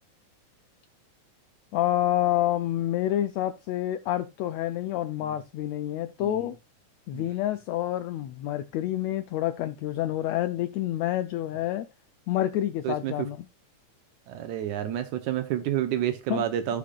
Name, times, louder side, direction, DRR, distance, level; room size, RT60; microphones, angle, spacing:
voice 1, 1.7-6.5 7.1-11.9 12.3-13.4 16.3-16.5, left 13 dB, 80° left, 1.6 m, -28 dB
voice 2, 6.2-6.5 7.1-7.2 12.8-13.3 14.3-16.8, right 11 dB, 75° right, 2.1 m, -29 dB
15.0 x 5.2 x 2.3 m
omnidirectional pair, 3.6 m